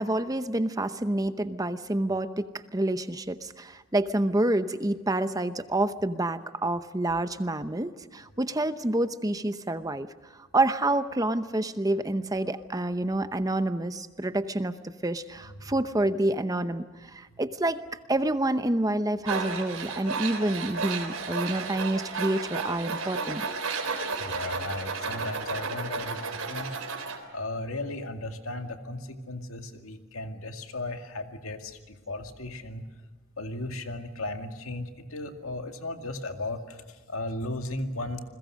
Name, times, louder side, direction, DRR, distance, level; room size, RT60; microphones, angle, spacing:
voice 1, 0.0-10.1 10.5-17.8 18.1-23.4, right 1 dB, 15° right, 11 dB, 0.8 m, -28 dB
Tools, 19.2-27.2, right 4 dB, 85° right, 3.6 m, -33 dB
voice 2, 24.2-26.7 27.3-32.9 33.4-36.8 37.1-38.2, left 2 dB, 80° left, 5 dB, 2.2 m, -36 dB
29.0 x 21.5 x 6.4 m, 1.3 s
head